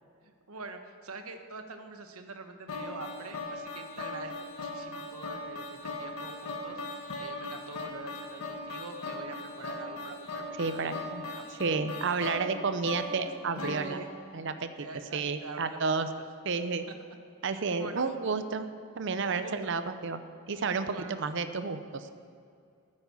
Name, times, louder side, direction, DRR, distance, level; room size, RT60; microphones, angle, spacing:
voice 1, 0.2-6.8 7.2-10.9 11.3-11.6 11.9-12.0 13.6-14.1 14.8-15.9 17.5-18.0 19.3-19.7 20.9-21.1, right 3 dB, 85° right, 6 dB, 1.1 m, -44 dB
sound 1, 2.7-14.9, left 2 dB, 85° left, 1.5 m, -39 dB
voice 2, 10.6-11.2 11.6-14.0 14.3-14.7 15.1-16.1 16.4-16.9 17.4-20.2 20.5-22.1, right 4 dB, 55° right, 10 dB, 0.6 m, -31 dB
9.7 x 9.3 x 7.0 m, 2.3 s
head